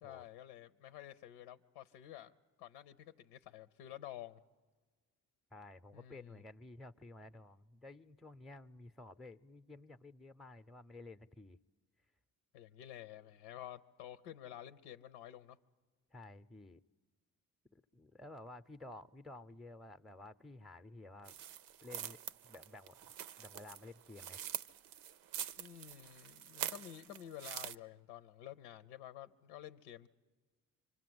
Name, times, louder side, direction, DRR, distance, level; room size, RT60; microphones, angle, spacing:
voice 1, 0.0-2.3 2.6-4.4 5.9-6.4 12.5-15.6 25.6-30.1, left 12 dB, 85° left, 11 dB, 0.7 m, -51 dB
voice 2, 5.5-11.6 16.1-16.8 17.7-21.3 21.8-22.2 22.4-23.0 23.4-24.4, left 2 dB, ahead, 10 dB, 0.7 m, -53 dB
sound 1, 21.2-27.7, right 10 dB, 80° right, 0.8 m, -45 dB
25.5 x 25.0 x 7.9 m, 1.3 s
hypercardioid pair, 50°, 40 cm